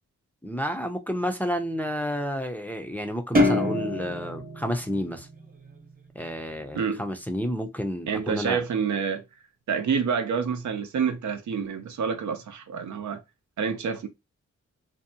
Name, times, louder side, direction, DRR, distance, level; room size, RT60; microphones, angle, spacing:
voice 1, 0.4-5.3 6.2-8.6, equal, 5° left, 0.4 m, -30 dB
sound 1, 3.3-5.9, left 1 dB, 30° right, 0.9 m, -26 dB
voice 2, 8.1-9.2 9.7-13.2 13.6-14.1, right 6 dB, 80° right, 0.5 m, -28 dB
2.6 x 2.1 x 2.7 m
wide cardioid pair, 75°, 29 cm